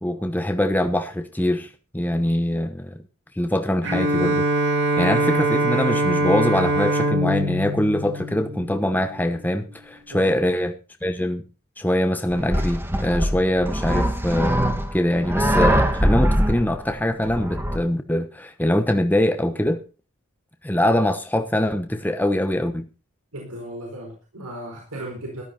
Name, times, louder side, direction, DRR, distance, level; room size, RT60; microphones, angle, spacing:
voice 1, 0.0-3.0 3.4-4.5 5.0-11.5 11.8-19.8 20.6-22.9, left 1 dB, 10° left, 1.0 m, -23 dB
Bowed string instrument, 3.8-9.1, right 1 dB, 55° right, 3.5 m, -23 dB
sound 1, 12.3-17.8, equal, 10° right, 1.5 m, -22 dB
voice 2, 23.3-25.4, right 1 dB, 90° right, 4.3 m, -36 dB
14.0 x 12.0 x 4.3 m
head